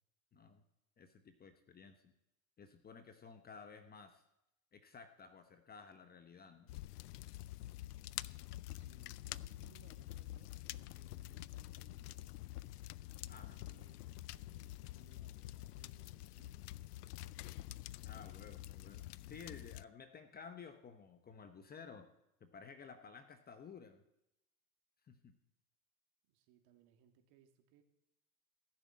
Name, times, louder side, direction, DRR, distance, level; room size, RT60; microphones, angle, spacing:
voice 1, 0.3-0.6 1.0-2.1 2.6-4.2 4.7-6.7 13.3-13.7 18.0-22.1 22.4-24.0 25.1-25.3, left 5 dB, 20° left, 9 dB, 1.0 m, -54 dB
sound 1, 6.7-19.8, left 16 dB, 65° left, 0.6 m, -48 dB
voice 2, 8.7-12.4 13.1-16.7 26.3-27.8, right 10 dB, 50° right, 5 dB, 2.4 m, -69 dB
16.0 x 7.2 x 8.6 m, 0.86 s
hypercardioid pair, 105°, 50 cm